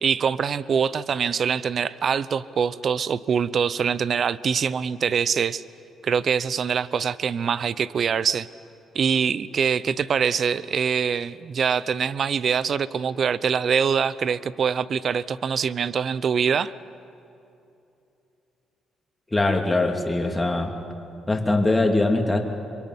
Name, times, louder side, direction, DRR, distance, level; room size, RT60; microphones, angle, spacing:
voice 1, 0.0-5.6 6.0-8.5 8.9-16.7, right 7 dB, 55° right, 17 dB, 0.7 m, -24 dB
voice 2, 19.3-20.8 21.3-22.4, left 2 dB, 15° left, 2 dB, 2.9 m, -22 dB
26.0 x 23.0 x 9.8 m, 2.8 s
cardioid pair, 90°, 0 cm